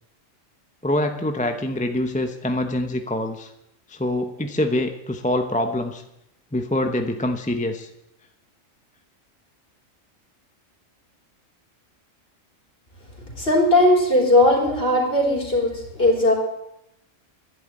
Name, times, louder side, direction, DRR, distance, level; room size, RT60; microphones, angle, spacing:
voice 1, 0.8-3.5 3.9-6.0 6.5-7.9, left 1 dB, 5° left, 6 dB, 0.8 m, -25 dB
voice 2, 13.4-16.3, left 1 dB, 45° left, 0 dB, 4.0 m, -18 dB
11.5 x 11.0 x 8.9 m, 0.84 s
omnidirectional pair, 1.3 m